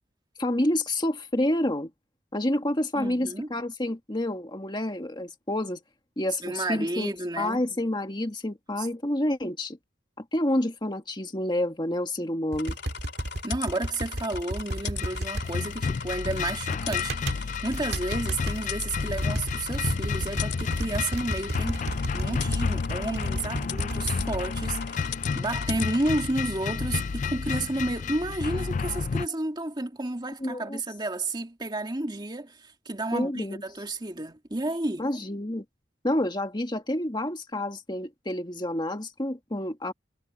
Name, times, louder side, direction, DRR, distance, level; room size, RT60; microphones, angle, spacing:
voice 1, 0.4-1.9 2.3-5.8 6.2-9.8 10.2-12.8 30.4-30.8 33.1-33.6 35.0-35.6 36.0-39.9, left 1 dB, 25° left, 1.9 m, -28 dB
voice 2, 2.9-3.5 6.4-7.6 8.8-8.9 13.4-35.1, right 2 dB, 25° right, 2.2 m, -31 dB
sound 1, 12.5-15.5 16.7-17.4 17.7-18.6 19.0-24.5, right 1 dB, 60° right, 1.8 m, -32 dB
sound 2, 12.6-26.3, left 8 dB, 60° left, 3.1 m, -40 dB
sound 3, 15.0-29.3, left 5 dB, 40° left, 0.4 m, -31 dB
head